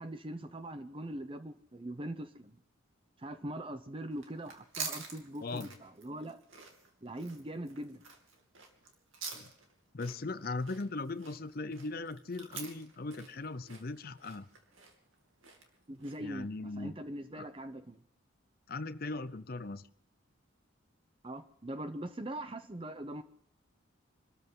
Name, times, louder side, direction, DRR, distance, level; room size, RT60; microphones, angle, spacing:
voice 1, 0.0-2.6 3.2-6.4 7.0-8.0 15.9-18.0 21.2-23.2, right 1 dB, 25° right, 10 dB, 0.7 m, -42 dB
sound 1, 4.1-16.4, right 5 dB, 75° right, 2.5 m, -47 dB
voice 2, 5.4-5.7 9.3-9.5 9.9-14.5 16.2-17.0 17.3-17.5 18.7-19.8, left 3 dB, 45° left, 13 dB, 0.6 m, -39 dB
25.5 x 13.5 x 3.8 m, 0.66 s
head